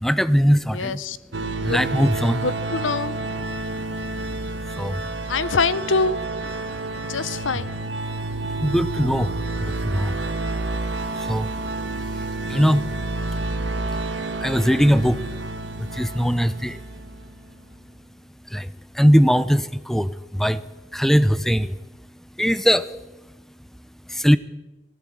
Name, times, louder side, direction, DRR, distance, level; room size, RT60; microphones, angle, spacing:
voice 1, 0.0-1.0 1.6-2.5 4.8-5.0 8.6-9.3 9.6-10.2 11.3-11.5 12.5-12.9 14.4-15.2 15.8-16.8 18.5-18.7 18.9-20.6 20.9-21.7 22.4-22.9 24.1-24.4, equal, ahead, 15 dB, 0.6 m, -20 dB
voice 2, 0.7-1.2 1.7-1.8 2.4-3.2 5.3-6.2 7.1-7.8, left 4 dB, 85° left, 17 dB, 0.8 m, -24 dB
sound 1, 1.3-17.2, right 2 dB, 70° right, 1.7 m, -29 dB
19.0 x 16.0 x 8.7 m, 1.1 s
head